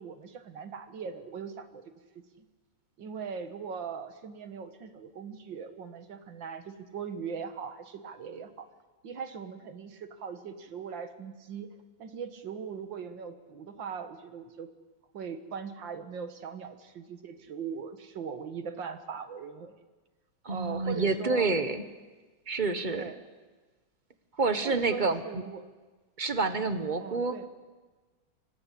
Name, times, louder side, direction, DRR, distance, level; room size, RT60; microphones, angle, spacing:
voice 1, 0.0-1.9 3.0-8.7 9.0-11.7 12.0-14.7 15.1-19.8 20.5-21.5 22.9-23.2 24.6-25.6 27.0-27.5, right 6 dB, 65° right, 9 dB, 2.1 m, -40 dB
voice 2, 20.4-21.8 22.5-23.0 24.4-25.4 26.2-27.3, right 3 dB, 30° right, 9 dB, 1.1 m, -28 dB
25.5 x 18.0 x 8.5 m, 1.3 s
omnidirectional pair, 2.2 m